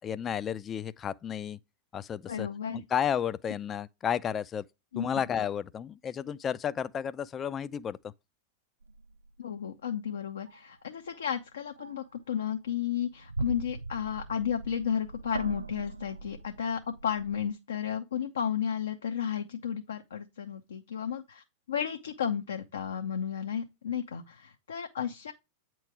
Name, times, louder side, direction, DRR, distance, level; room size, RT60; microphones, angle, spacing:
voice 1, 0.0-1.6 1.9-2.5 2.7-4.6 5.0-8.0, left 8 dB, 25° left, 0.4 m, -32 dB
voice 2, 2.3-2.8 4.9-5.1 9.4-25.3, left 8 dB, 75° left, 0.7 m, -33 dB
sound 1, 8.8-9.3 10.5-10.6 11.1-11.4 11.8-12.1 12.5-17.5, right 3 dB, 90° right, 0.3 m, -41 dB
8.9 x 3.1 x 4.7 m
figure-of-eight pair, 95°, 0 cm